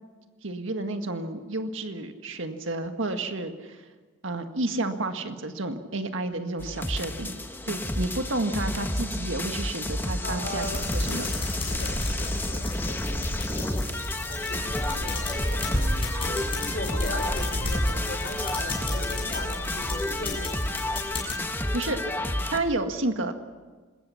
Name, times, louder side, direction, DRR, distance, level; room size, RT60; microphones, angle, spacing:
voice 1, 0.4-3.8 4.2-7.3 7.6-11.3 21.7-22.0 22.5-23.3, right 2 dB, 75° right, 6 dB, 1.8 m, -30 dB
sound 1, 6.6-22.6, left 1 dB, 10° left, 1.4 m, -31 dB
voice 2, 10.2-13.7 14.3-20.6, left 1 dB, 55° left, 4 dB, 4.9 m, -39 dB
sound 2, 10.6-21.4, left 1 dB, 30° left, 7.1 m, -32 dB
26.0 x 21.0 x 5.9 m, 1.4 s
head